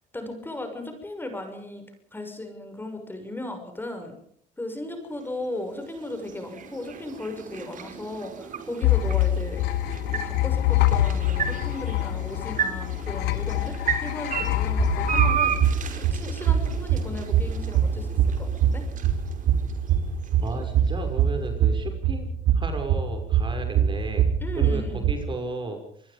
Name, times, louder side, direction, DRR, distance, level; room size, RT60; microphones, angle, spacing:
voice 1, 0.1-1.8 2.1-4.2 4.6-9.6 10.1-13.7 14.0-15.6 15.9-18.8 24.4-25.1, left 1 dB, 10° left, 6 dB, 6.2 m, -36 dB
sound 1, 5.0-21.2, right 7 dB, 50° right, 5.2 m, -34 dB
sound 2, 8.8-16.3, left 13 dB, 85° left, 1.3 m, -25 dB
sound 3, 14.8-25.1, right 8 dB, 80° right, 4.2 m, -24 dB
voice 2, 20.4-24.2 24.6-24.8 25.1-26.1, right 3 dB, 30° right, 5 dB, 6.1 m, -34 dB
26.5 x 21.5 x 5.3 m, 0.67 s
cardioid pair, 110°, 17 cm